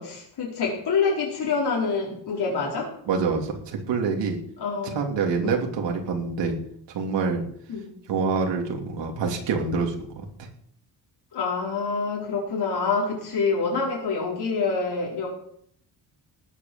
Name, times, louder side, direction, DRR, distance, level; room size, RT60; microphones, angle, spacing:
voice 1, 0.0-2.9 4.6-5.1 5.4-5.6 7.7-7.9 11.3-15.3, left 4 dB, 65° left, -3 dB, 4.9 m, -26 dB
voice 2, 3.1-4.4 4.8-6.5 6.9-7.4 8.1-10.2, right 5 dB, 85° right, 1 dB, 3.1 m, -26 dB
19.0 x 8.4 x 7.2 m, 0.66 s
cardioid pair, 125°, 42 cm